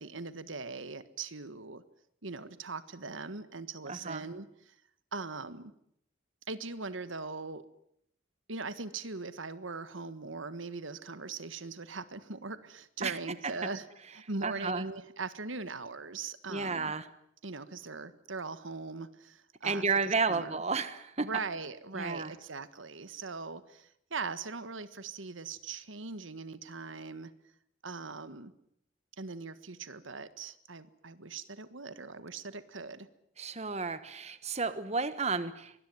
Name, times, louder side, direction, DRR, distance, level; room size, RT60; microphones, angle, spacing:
voice 1, 0.0-1.8 2.2-4.7 5.1-5.7 6.5-7.6 8.5-13.9 14.1-16.9 17.4-20.6 21.2-27.3 27.8-28.5 29.2-33.1, right 4 dB, 75° right, 13 dB, 1.6 m, -40 dB
voice 2, 3.9-4.2 13.0-13.2 13.4-13.5 14.4-14.8 16.5-17.1 19.6-21.3 21.9-22.3 33.4-35.7, right 4 dB, 35° right, 12 dB, 1.4 m, -32 dB
24.5 x 21.0 x 9.5 m, 0.72 s
head